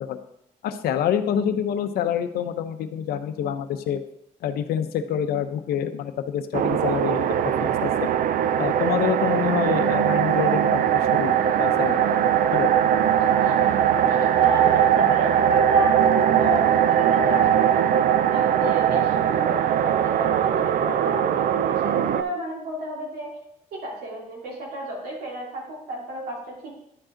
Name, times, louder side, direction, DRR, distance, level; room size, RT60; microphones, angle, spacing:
voice 1, 0.6-4.0 4.4-8.1 8.6-11.3 11.6-11.9 12.5-12.7, left 9 dB, 85° left, 10 dB, 0.7 m, -27 dB
sound 1, 6.5-22.2, right 9 dB, 65° right, 0.5 m, -20 dB
voice 2, 13.2-17.8 18.3-23.4 23.7-26.7, right 1 dB, 90° right, -3 dB, 2.9 m, -31 dB
10.5 x 5.0 x 3.8 m, 0.76 s
cardioid pair, 90°, 16 cm